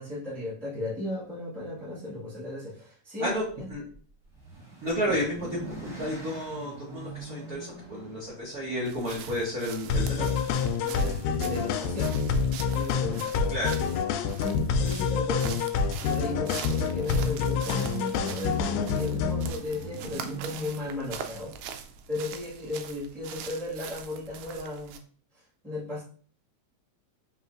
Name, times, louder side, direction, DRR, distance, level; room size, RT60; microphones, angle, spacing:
voice 1, 0.0-3.7 5.1-5.2 10.8-12.1 12.7-13.2 14.4-15.6 16.0-21.5 22.1-25.0 25.6-26.0, left 2 dB, ahead, -8 dB, 0.7 m, -35 dB
voice 2, 3.2-3.8 4.8-10.4 13.5-13.8, equal, 70° right, -6 dB, 0.8 m, -32 dB
sound 1, 4.3-10.4 11.5-11.9 12.2-12.3 12.6-12.7 17.8-22.2, right 3 dB, 35° right, 1.5 m, -45 dB
sound 2, 8.9-25.0, right 8 dB, 85° right, 2.0 m, -43 dB
sound 3, 9.9-19.5, left 6 dB, 85° left, 1.9 m, -27 dB
5.2 x 3.1 x 2.5 m, 0.44 s
omnidirectional pair, 3.4 m